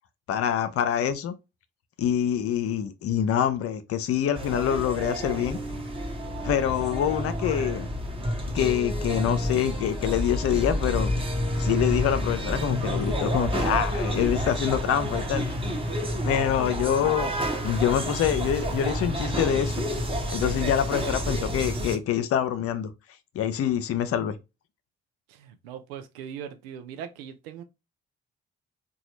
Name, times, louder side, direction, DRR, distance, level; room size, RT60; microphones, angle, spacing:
voice 1, 0.3-1.3 2.0-5.6 6.4-7.9 8.5-11.1 11.6-15.5 16.2-17.3 17.6-19.8 20.3-22.9 23.3-24.4, left 9 dB, 50° left, 0.5 m, -25 dB
sound 1, 4.3-22.0, equal, 20° right, 0.9 m, -29 dB
voice 2, 25.3-27.6, right 8 dB, 75° right, 0.5 m, -40 dB
2.9 x 2.2 x 3.1 m
figure-of-eight pair, 40°, 30 cm